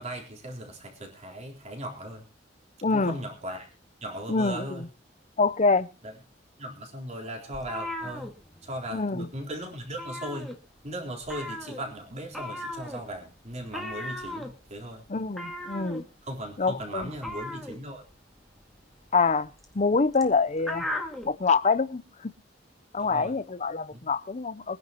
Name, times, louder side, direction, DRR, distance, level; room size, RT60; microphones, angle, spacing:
voice 1, 0.0-2.2 2.9-3.7 4.0-4.9 6.0-6.1 6.6-8.3 8.6-10.5 10.8-15.0 16.2-18.0 23.0-23.3 23.9-24.1, right 1 dB, 35° right, 3.9 m, -38 dB
voice 2, 2.8-3.2 4.3-4.9 5.4-5.9 8.9-9.3 15.1-16.0 16.6-17.1 19.1-19.5 19.7-20.9 21.2-22.3 22.9-24.8, left 4 dB, 40° left, 0.7 m, -25 dB
sound 1, 7.5-9.0 9.3-9.5 9.8-10.9 11.2-21.3, left 1 dB, ahead, 2.1 m, -38 dB
23.5 x 10.5 x 3.0 m
head